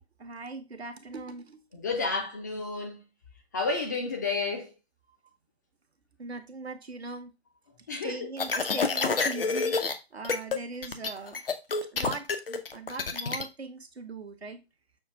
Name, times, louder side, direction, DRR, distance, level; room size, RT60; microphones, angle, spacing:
voice 1, 0.2-1.6 6.2-7.3 7.9-11.4 11.9-14.6, right 3 dB, 75° right, 1.0 m, -40 dB
voice 2, 1.7-3.0 3.5-4.7 7.9-8.2, left 3 dB, 15° left, 0.5 m, -31 dB
sound 1, 8.4-9.9 10.2-10.6 10.8-13.4, left 4 dB, 60° left, 0.8 m, -28 dB
6.3 x 2.3 x 3.4 m
figure-of-eight pair, 140°, 32 cm